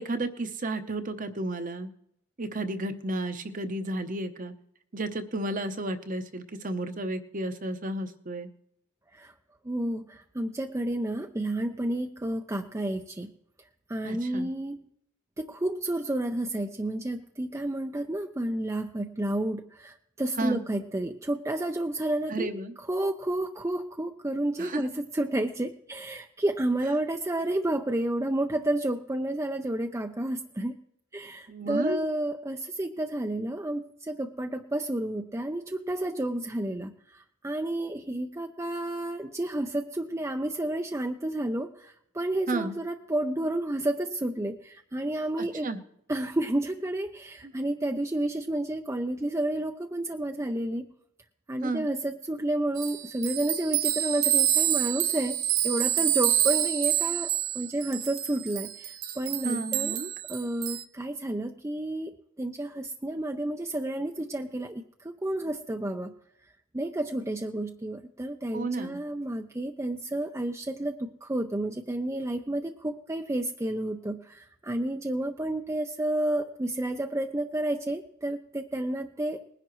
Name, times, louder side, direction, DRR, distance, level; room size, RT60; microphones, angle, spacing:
voice 1, 0.0-1.9 2.4-4.5 4.9-8.5 14.0-14.5 20.4-20.6 22.3-22.7 24.6-24.8 31.5-32.1 42.5-42.8 45.4-45.8 47.4-47.5 51.6-51.9 59.4-60.1 68.5-69.0, right 2 dB, 35° right, 9 dB, 0.8 m, -32 dB
voice 2, 9.6-13.3 13.9-14.8 15.4-22.5 22.9-30.7 31.1-45.7 46.1-50.9 51.5-55.4 55.6-60.0 60.3-66.1 66.7-79.4, right 1 dB, 15° right, 4 dB, 0.5 m, -31 dB
sound 1, 52.8-60.8, right 11 dB, 70° right, 0.7 m, -27 dB
20.5 x 10.5 x 3.1 m, 0.73 s
head